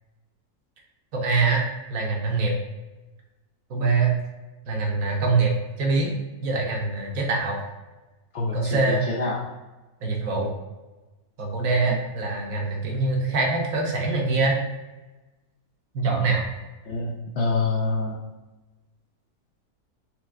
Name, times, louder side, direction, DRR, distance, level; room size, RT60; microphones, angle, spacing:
voice 1, 1.1-2.5 3.7-4.1 4.7-6.1 6.4-7.6 8.5-9.1 10.0-10.5 11.4-14.6 15.9-16.4, right 3 dB, 65° right, 0 dB, 1.1 m, -24 dB
voice 2, 8.3-8.8 9.2-9.3 16.9-18.2, left 3 dB, 65° left, -4 dB, 0.7 m, -26 dB
4.5 x 3.3 x 2.4 m, 1.1 s
omnidirectional pair, 1.7 m